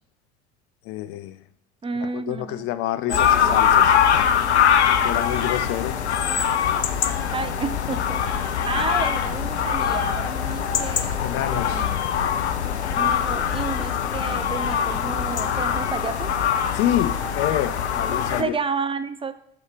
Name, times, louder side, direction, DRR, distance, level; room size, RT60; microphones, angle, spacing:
voice 1, 0.9-1.4 2.1-4.4 5.0-6.0 11.2-11.8 16.7-18.5, left 13 dB, 45° left, 0.5 m, -27 dB
voice 2, 1.8-2.7 3.1-3.9 7.3-12.0 13.0-16.4 18.1-19.3, right 4 dB, 15° right, 0.5 m, -31 dB
sound 1, 3.1-18.4, left 8 dB, 80° left, 0.6 m, -22 dB
6.3 x 4.4 x 5.1 m
figure-of-eight pair, 70°, 33 cm